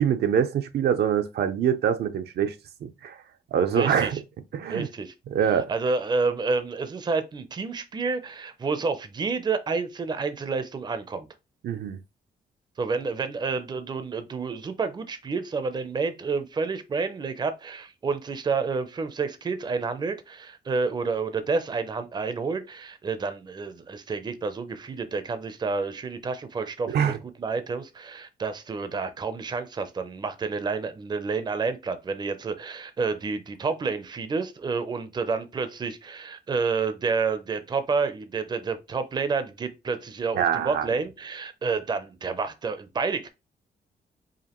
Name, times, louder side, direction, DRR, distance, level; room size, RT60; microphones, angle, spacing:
voice 1, 0.0-2.5 2.8-3.2 3.5-4.2 4.5-4.9 5.3-5.7 11.6-12.0 26.9-27.2 40.3-40.9, right 8 dB, 80° right, 0.5 m, -24 dB
voice 2, 3.8-4.1 4.7-5.1 5.5-11.3 12.8-27.1 27.4-43.3, right 4 dB, 25° right, 0.5 m, -29 dB
4.9 x 2.5 x 2.9 m
wide cardioid pair, 130°, 17 cm